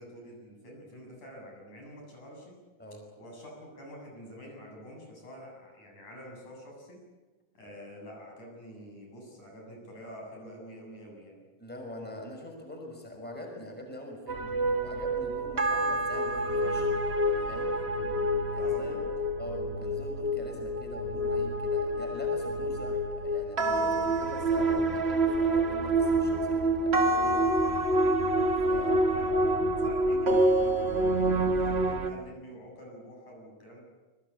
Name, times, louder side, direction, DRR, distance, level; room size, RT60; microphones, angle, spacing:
voice 1, 0.0-2.5 3.2-7.0 7.5-11.4 18.0-18.2 18.6-19.4 28.7-33.8, equal, 65° left, 0 dB, 9.1 m, -47 dB
voice 2, 11.6-16.9 17.4-17.7 18.5-19.1 19.4-27.7 28.6-29.1, left 1 dB, 5° left, 2 dB, 6.0 m, -43 dB
sound 1, 14.3-32.1, right 1 dB, 45° right, 0.8 m, -27 dB
29.0 x 22.5 x 8.6 m, 1.2 s
omnidirectional pair, 3.7 m